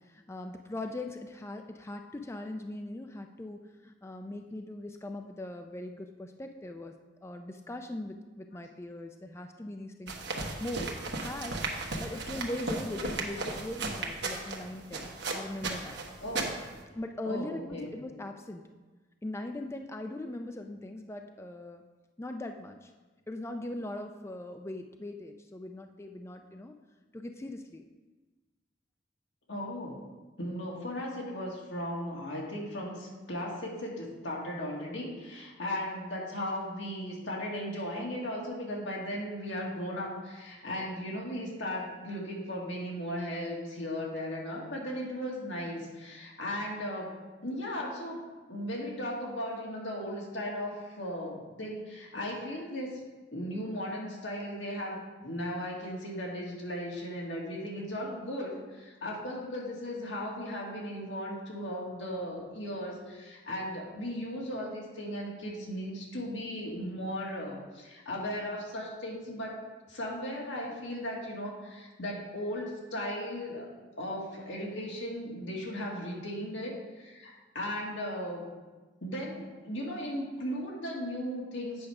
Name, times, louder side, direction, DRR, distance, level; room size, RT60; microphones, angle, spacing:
voice 1, 0.0-6.9 7.2-10.2 10.6-11.6 12.0-16.0 16.9-18.6 19.2-21.8 22.2-22.9 23.3-26.7 27.1-27.9, left 1 dB, 15° left, 5 dB, 0.4 m, -40 dB
sound 1, 10.1-16.8, right 3 dB, 65° right, 1.1 m, -36 dB
voice 2, 16.2-16.5 17.2-18.0 29.5-30.0 30.4-47.2 47.4-48.2 48.5-53.0 53.3-69.6 69.9-73.7 74.0-78.5 79.0-81.9, equal, 85° left, -2 dB, 2.0 m, -36 dB
8.6 x 4.9 x 5.9 m, 1.3 s
head